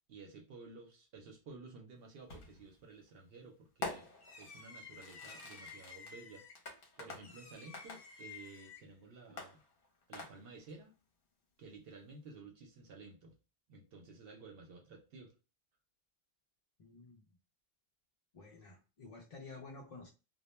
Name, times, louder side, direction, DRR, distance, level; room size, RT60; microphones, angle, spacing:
voice 1, 0.1-4.1 4.4-6.5 7.0-9.6 10.1-10.9 11.6-13.3 13.7-15.3, right 3 dB, 70° right, 0.8 m, -53 dB
Fireworks, 2.3-2.7 3.8-8.9 9.4-10.7, left 3 dB, 65° left, 0.9 m, -47 dB
voice 2, 16.8-17.2 18.3-20.1, left 3 dB, 45° left, 0.5 m, -52 dB
2.2 x 2.1 x 2.9 m
omnidirectional pair, 1.0 m